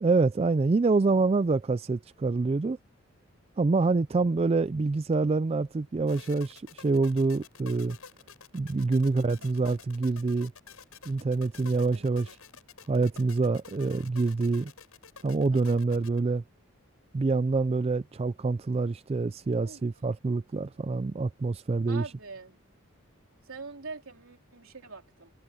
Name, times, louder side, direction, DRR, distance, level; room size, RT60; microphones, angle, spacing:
voice 1, 0.0-2.8 3.6-8.0 8.5-10.5 11.1-12.4 12.9-14.7 15.2-16.4 17.1-22.0, right 3 dB, 30° right, 0.3 m, -26 dB
sound 1, 6.1-16.2, left 6 dB, 85° left, 6.9 m, -49 dB
voice 2, 8.9-9.5 11.9-12.3 15.5-15.8 19.6-19.8 21.9-22.6 23.5-25.3, right 4 dB, 70° right, 3.6 m, -45 dB
head